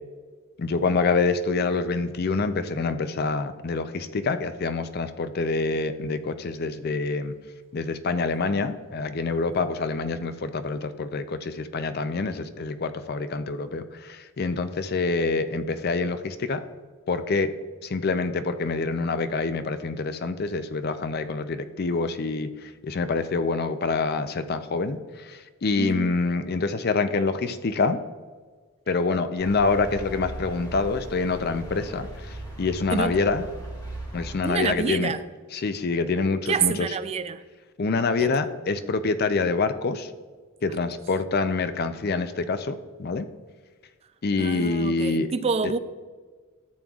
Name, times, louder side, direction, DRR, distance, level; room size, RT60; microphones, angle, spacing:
voice 1, 0.6-7.3 7.7-16.6 17.1-17.6 17.8-28.0 28.9-33.5 34.1-35.1 35.5-37.0 37.8-40.1 40.6-43.3 44.2-45.3 45.6-45.7, left 4 dB, 50° left, 0.5 m, -26 dB
sound 1, 29.4-34.5, right 1 dB, 20° left, 1.8 m, -38 dB
voice 2, 34.4-35.2 36.5-37.4 38.2-38.3 44.4-45.8, right 5 dB, 30° right, 0.3 m, -27 dB
12.5 x 7.7 x 2.4 m
head